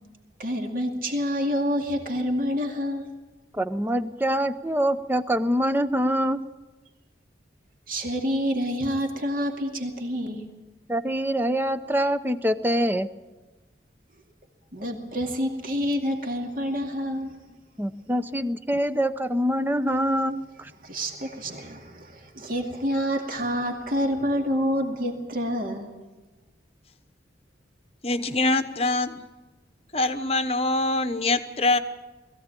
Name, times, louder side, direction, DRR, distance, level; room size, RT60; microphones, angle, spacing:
voice 1, 0.4-3.1 7.9-10.5 14.7-17.4 20.8-25.9, equal, 50° right, 3 dB, 2.4 m, -28 dB
voice 2, 3.5-6.4 10.9-13.1 17.8-20.7, equal, 10° right, 11 dB, 0.6 m, -25 dB
voice 3, 28.0-29.2 29.9-31.8, left 2 dB, 35° left, 10 dB, 0.9 m, -24 dB
20.5 x 15.5 x 9.0 m, 1.2 s
head